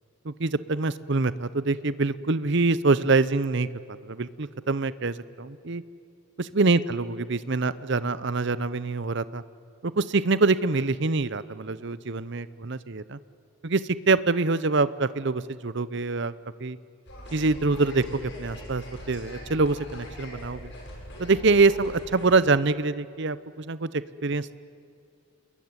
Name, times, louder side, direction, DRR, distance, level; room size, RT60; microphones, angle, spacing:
voice 1, 0.2-3.7 4.0-5.8 6.4-9.4 9.8-13.2 13.6-16.3 16.6-16.8 17.3-20.7 21.2-24.5, right 3 dB, 55° right, 16 dB, 0.7 m, -25 dB
sound 1, 17.1-22.4, equal, 55° left, 7.4 m, -42 dB
28.0 x 21.0 x 9.7 m, 2.4 s
head